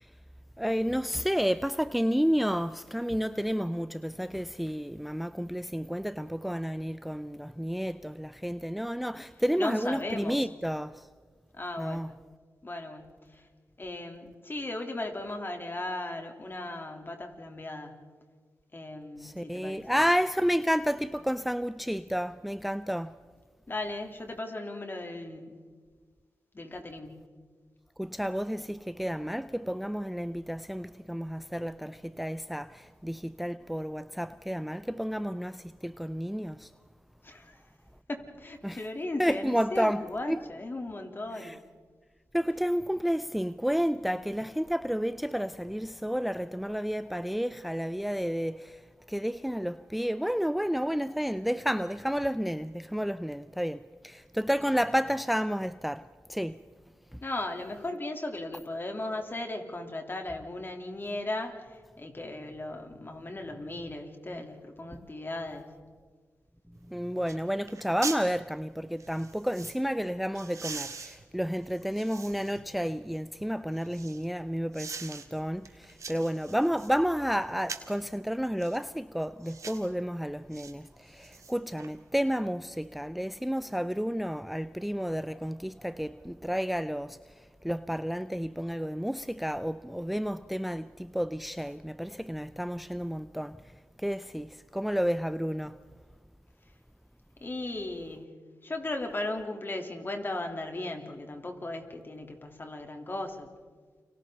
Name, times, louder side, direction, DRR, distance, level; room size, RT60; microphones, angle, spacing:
voice 1, 0.6-11.1 11.8-12.1 19.2-23.1 28.0-36.7 38.6-38.8 39.2-40.0 40.3-40.4 41.3-41.6 42.3-48.8 49.1-56.0 56.3-56.6 57.1-57.2 66.9-93.6 94.0-95.8, equal, ahead, 0.5 m, -31 dB
voice 2, 9.5-10.4 11.5-12.1 12.6-13.5 13.8-18.0 18.7-19.9 23.7-25.6 26.5-27.3 37.2-37.6 38.1-41.6 57.2-65.6 97.4-98.3 98.6-103.5, left 2 dB, 35° left, 3.6 m, -37 dB
sound 1, 66.7-66.8 67.3-67.4 67.7-68.3 69.0-69.8 70.3-72.6 73.1-74.2 74.7-75.3 75.6-77.0 77.6-78.0 78.6-78.8 79.4-79.9 80.5-80.7 81.1-81.9 82.3-82.4, right 5 dB, 60° right, 2.1 m, -42 dB
29.5 x 25.0 x 4.1 m
cardioid pair, 50°, 6 cm